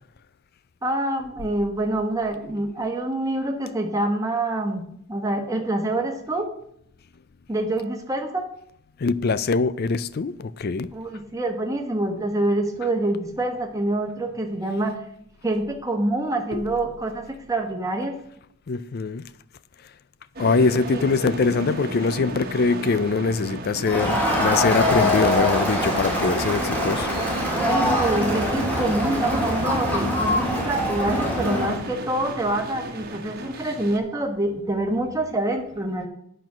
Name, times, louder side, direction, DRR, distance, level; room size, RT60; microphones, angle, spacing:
voice 1, 0.8-4.8 5.1-6.5 7.5-8.4 10.9-15.0 15.4-18.2 20.9-21.1 27.7-36.1, right 1 dB, 15° right, 1.2 m, -26 dB
voice 2, 9.0-10.9 16.5-16.6 18.7-19.2 20.4-27.1, left 4 dB, 45° left, 0.4 m, -23 dB
sound 1, 20.4-34.0, right 2 dB, 45° right, 1.2 m, -35 dB
Crowd, 23.9-31.8, left 1 dB, 5° left, 2.0 m, -23 dB
9.0 x 6.0 x 6.1 m
head